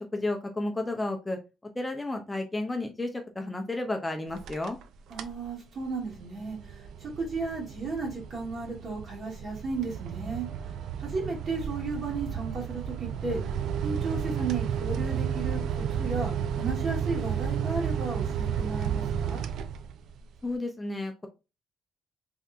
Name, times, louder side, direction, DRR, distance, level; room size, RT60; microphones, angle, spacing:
voice 1, 0.0-1.4 1.8-4.8 20.4-21.1, left 2 dB, 15° left, 4 dB, 0.6 m, -32 dB
sound 1, 4.3-4.8 5.1-5.5 5.9-20.2, right 8 dB, 80° right, 0.3 m, -32 dB
voice 2, 5.1-10.5 11.0-13.4 13.8-19.4, right 4 dB, 50° right, -3 dB, 2.0 m, -34 dB
3.4 x 2.8 x 2.4 m, 0.27 s
cardioid pair, 90°, 0 cm